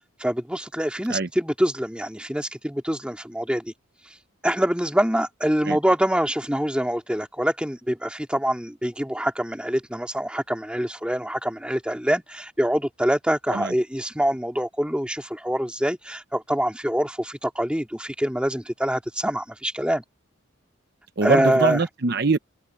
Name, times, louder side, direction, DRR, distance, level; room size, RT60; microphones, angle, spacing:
voice 1, 0.2-3.7 4.1-4.2 4.4-20.0 21.2-21.8, equal, 5° right, 2.1 m, -25 dB
voice 2, 21.2-22.4, right 3 dB, 50° right, 0.7 m, -23 dB
head